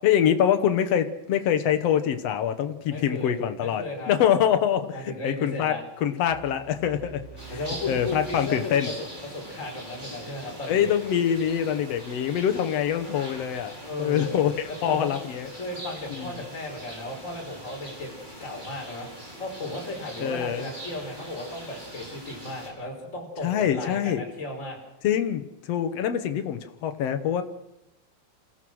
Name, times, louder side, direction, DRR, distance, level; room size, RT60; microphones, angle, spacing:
voice 1, 0.0-7.2 7.9-8.9 10.7-13.7 14.0-15.5 16.1-16.4 20.2-20.7 23.4-24.2 25.0-27.4, left 9 dB, 60° left, 8 dB, 1.8 m, -25 dB
voice 2, 2.8-4.1 4.9-5.8 7.5-10.9 13.8-14.4 14.9-15.1 15.5-19.1 19.4-24.8, left 1 dB, 20° left, 0 dB, 5.1 m, -35 dB
sound 1, 6.3-9.3, right 8 dB, 50° right, 7.0 m, -47 dB
sound 2, 7.4-22.7, right 1 dB, 10° right, 4.9 m, -42 dB
27.0 x 16.0 x 6.3 m, 0.88 s
omnidirectional pair, 4.2 m